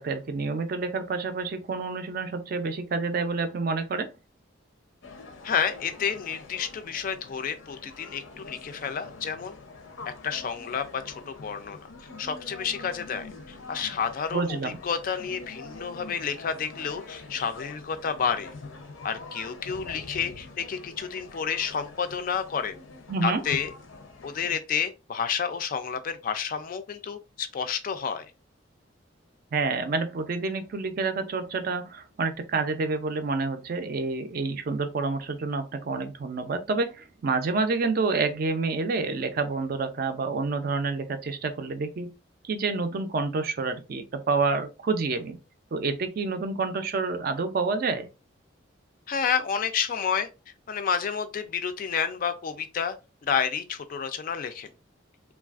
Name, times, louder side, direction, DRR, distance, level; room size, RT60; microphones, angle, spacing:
voice 1, 0.0-4.1 14.3-14.8 23.1-23.4 29.5-42.1 42.4-45.4 45.7-48.1, right 4 dB, 45° right, 0.4 m, -28 dB
sound 1, 5.0-24.6, left 3 dB, 85° left, 0.6 m, -44 dB
voice 2, 5.4-9.6 10.0-11.8 12.2-18.5 19.0-22.8 23.2-23.7 24.2-28.3 49.1-50.3 50.7-52.9 53.2-54.7, left 7 dB, 45° left, 0.3 m, -30 dB
3.2 x 2.3 x 2.3 m
head